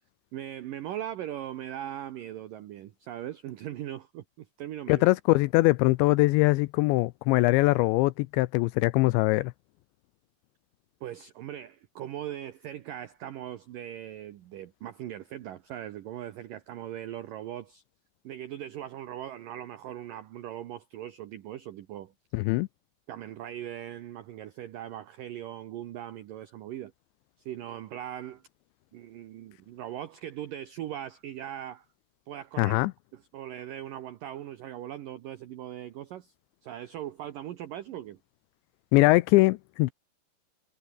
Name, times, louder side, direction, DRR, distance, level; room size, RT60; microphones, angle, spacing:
voice 1, 0.3-5.1 11.0-17.8 18.2-22.1 23.1-26.9 27.5-28.4 28.9-31.9 32.3-32.8 33.1-36.3 36.6-38.2, right 11 dB, 85° right, 1.9 m, -39 dB
voice 2, 4.9-9.5 22.3-22.7 32.6-32.9 38.9-39.9, left 21 dB, 80° left, 2.7 m, -22 dB
omnidirectional pair, 5.6 m